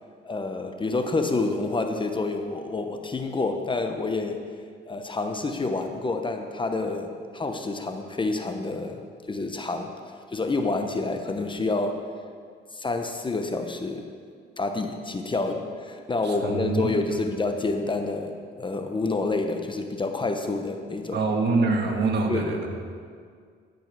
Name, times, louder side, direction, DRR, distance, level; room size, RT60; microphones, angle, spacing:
voice 1, 0.2-4.4 4.9-9.0 9.3-10.0 10.3-12.0 12.7-14.1 14.6-21.2 22.3-22.7, left 3 dB, 25° left, 5 dB, 0.9 m, -28 dB
voice 2, 16.2-17.0 21.1-22.7, right 3 dB, 60° right, 2 dB, 1.7 m, -25 dB
13.5 x 5.4 x 6.2 m, 2.1 s
cardioid pair, 90°, 20 cm